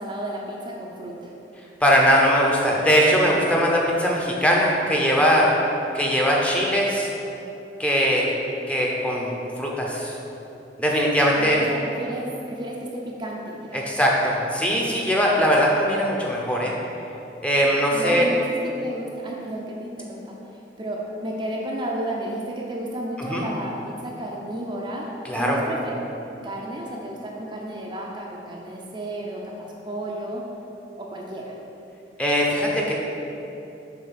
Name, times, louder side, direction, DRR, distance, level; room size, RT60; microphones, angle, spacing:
voice 1, 0.0-1.3 11.3-13.9 17.9-20.4 20.8-30.4 31.0-31.5, right 1 dB, 25° right, -2 dB, 0.6 m, -32 dB
voice 2, 1.8-5.5 5.9-7.1 7.8-8.3 8.7-9.3 9.6-10.1 10.8-11.7 13.7-16.7 17.4-18.3 23.2-23.5 25.2-25.6 32.2-32.9, equal, 5° left, -3 dB, 0.8 m, -20 dB
7.1 x 3.4 x 5.7 m, 2.9 s
head